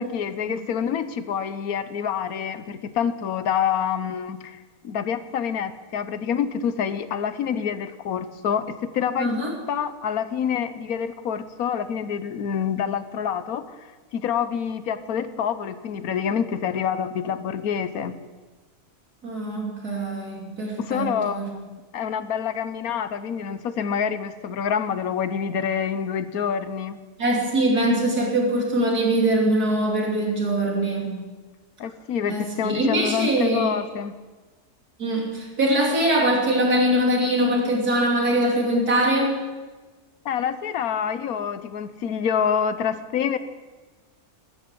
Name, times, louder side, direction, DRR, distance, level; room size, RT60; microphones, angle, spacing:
voice 1, 0.0-4.6 4.8-9.4 9.7-13.8 14.1-18.1 20.8-27.0 31.8-34.1 40.2-43.4, left 7 dB, 70° left, 12 dB, 1.3 m, -27 dB
voice 2, 9.2-9.5 19.2-21.5 27.2-31.2 32.3-33.8 35.0-39.4, right 1 dB, 75° right, -1 dB, 3.7 m, -22 dB
13.0 x 11.0 x 8.2 m, 1.3 s
omnidirectional pair, 1.6 m